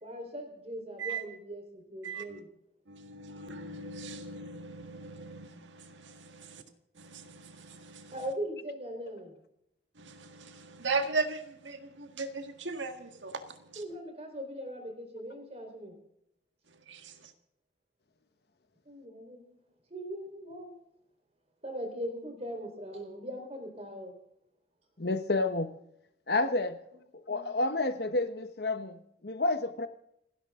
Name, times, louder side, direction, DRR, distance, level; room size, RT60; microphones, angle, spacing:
voice 1, 0.0-2.5 6.5-6.7 8.1-9.3 13.8-16.0 18.8-19.6 19.9-20.7 21.6-24.2 27.3-27.5, equal, 35° right, 4 dB, 4.2 m, -40 dB
voice 2, 2.0-2.4 2.9-6.6 7.0-8.1 10.0-13.8 16.9-17.1, right 4 dB, 80° right, 7 dB, 1.8 m, -38 dB
voice 3, 25.0-25.7 26.3-26.8 27.3-29.9, left 2 dB, 55° left, 9 dB, 1.2 m, -30 dB
29.5 x 11.5 x 3.8 m, 0.77 s
head